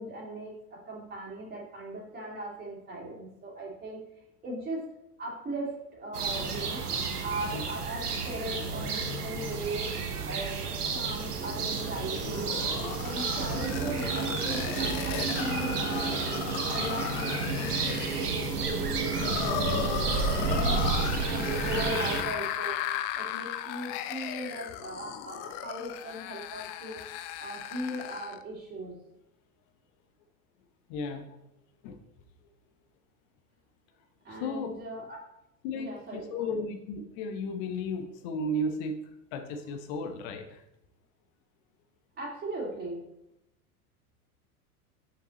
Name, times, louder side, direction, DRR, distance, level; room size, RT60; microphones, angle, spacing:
voice 1, 0.0-4.0 4.4-4.8 5.2-9.9 10.3-12.5 13.0-16.4 16.7-27.0 27.4-28.9 34.2-35.2 35.7-36.6 42.2-43.0, right 1 dB, 20° right, -3 dB, 2.5 m, -38 dB
sound 1, 6.1-22.2, right 4 dB, 85° right, 1.1 m, -31 dB
sound 2, 11.8-28.4, left 11 dB, 30° left, 0.3 m, -36 dB
voice 2, 30.9-31.4 31.8-32.0 34.3-34.8 35.6-40.6, left 1 dB, 50° left, 6 dB, 1.1 m, -34 dB
6.9 x 5.8 x 3.1 m, 0.83 s
hypercardioid pair, 90°, 45 cm